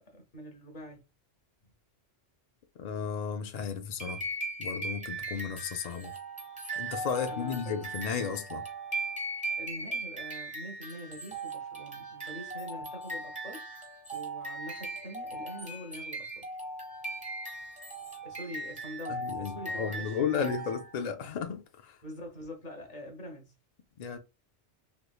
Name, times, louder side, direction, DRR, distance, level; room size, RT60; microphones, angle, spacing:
voice 1, 0.1-1.0 7.3-7.8 9.6-13.6 14.1-16.3 18.2-20.5 22.0-23.5, equal, 40° left, 1.1 m, -44 dB
voice 2, 2.8-4.2 4.6-6.1 6.8-8.6 19.1-22.0 24.0-24.2, left 6 dB, 70° left, 0.4 m, -34 dB
sound 1, 4.0-21.0, right 2 dB, 5° right, 0.9 m, -38 dB
3.4 x 3.0 x 2.2 m
omnidirectional pair, 1.2 m